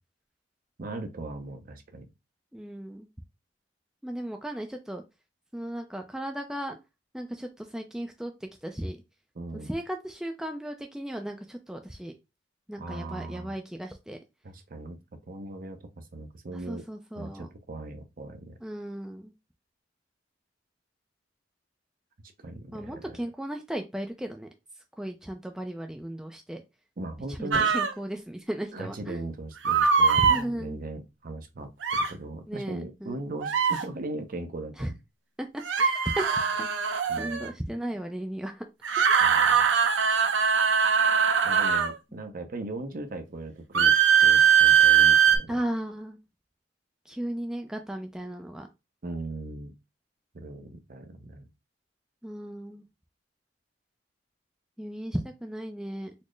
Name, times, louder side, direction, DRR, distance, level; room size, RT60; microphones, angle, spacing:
voice 1, 0.8-2.1 9.4-9.7 12.8-13.6 14.4-15.0 15.3-16.9 17.1-18.5 22.4-23.0 27.0-27.7 28.7-35.0 37.1-37.6 39.2-39.6 41.4-45.6 49.0-49.7 50.3-51.4, right 2 dB, 50° right, 0.6 m, -39 dB
voice 2, 2.5-3.1 4.0-5.0 5.5-6.8 7.1-9.0 9.6-12.1 12.7-14.2 16.5-17.5 18.6-19.3 22.7-24.5 25.0-26.6 27.3-29.3 30.2-30.8 32.5-33.2 34.8-34.9 35.4-38.7 39.0-39.3 42.1-42.2 45.5-46.2 47.1-48.7 52.2-52.8 54.8-56.1, right 1 dB, 5° right, 0.3 m, -36 dB
sound 1, 27.5-27.9 29.6-30.4 31.8-32.1 33.4-33.8 35.6-37.5 38.8-41.9 43.7-45.4, right 7 dB, 90° right, 0.6 m, -21 dB
4.2 x 2.0 x 3.1 m
head